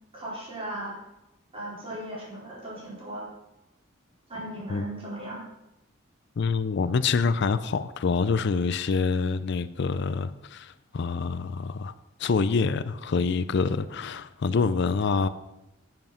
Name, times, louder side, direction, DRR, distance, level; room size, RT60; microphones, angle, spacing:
voice 1, 0.1-0.9 1.5-3.3 4.3-5.4, right 1 dB, 30° right, 4.5 m, -37 dB
voice 2, 6.4-11.9 12.2-15.3, left 4 dB, 60° left, 0.4 m, -26 dB
9.4 x 7.8 x 5.7 m
head